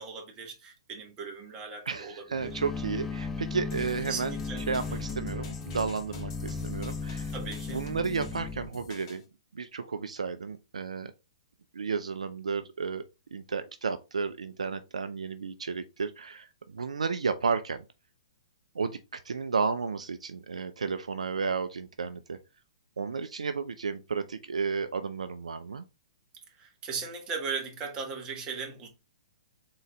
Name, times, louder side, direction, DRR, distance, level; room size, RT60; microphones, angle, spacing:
voice 1, 0.0-2.6 4.1-5.0 7.3-7.9 26.5-28.9, right 5 dB, 25° right, 1.4 m, -38 dB
voice 2, 1.9-4.3 4.7-7.3 7.7-9.2 9.5-11.1 11.7-13.0 13.3-17.8 18.8-22.4 23.0-25.9, right 5 dB, 80° right, 0.4 m, -32 dB
sound 1, 2.3-8.7, left 4 dB, 10° left, 0.5 m, -36 dB
sound 2, 3.7-9.2, left 1 dB, 45° left, 1.7 m, -47 dB
3.9 x 3.8 x 3.2 m
figure-of-eight pair, 120°, 4 cm